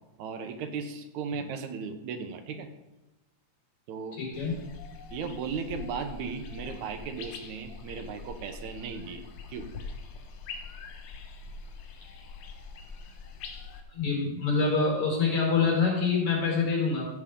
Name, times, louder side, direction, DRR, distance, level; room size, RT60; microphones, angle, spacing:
voice 1, 0.2-2.7 3.9-4.2 5.1-9.2 9.5-9.7, right 5 dB, 75° right, 7 dB, 2.2 m, -36 dB
voice 2, 4.1-4.6 13.9-17.1, left 4 dB, 70° left, -2 dB, 5.1 m, -26 dB
sound 1, 4.3-13.8, left 4 dB, 90° left, 2.6 m, -43 dB
15.5 x 8.0 x 3.7 m, 1.0 s
omnidirectional pair, 3.4 m